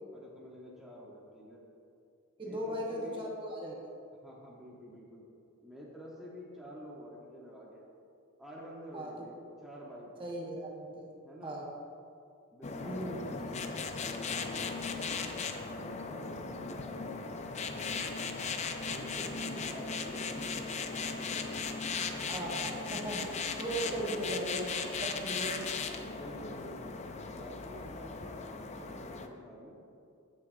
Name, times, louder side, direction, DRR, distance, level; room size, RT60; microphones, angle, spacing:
voice 1, 0.1-1.6 2.4-3.3 4.2-5.2 5.6-7.9 8.4-9.3 9.6-10.3 11.2-11.6 12.5-13.4 14.2-15.5 15.8-22.0 23.8-24.3 26.0-29.8, equal, ahead, -6 dB, 1.0 m, -49 dB
voice 2, 2.4-3.8 8.9-9.1 10.2-11.1 11.4-11.7 12.8-13.8 22.3-23.3 23.6-24.7 25.0-25.9, right 1 dB, 25° right, -3 dB, 1.2 m, -38 dB
sound 1, 12.6-29.3, left 4 dB, 30° left, 0.4 m, -37 dB
15.0 x 6.1 x 2.7 m, 2.5 s
head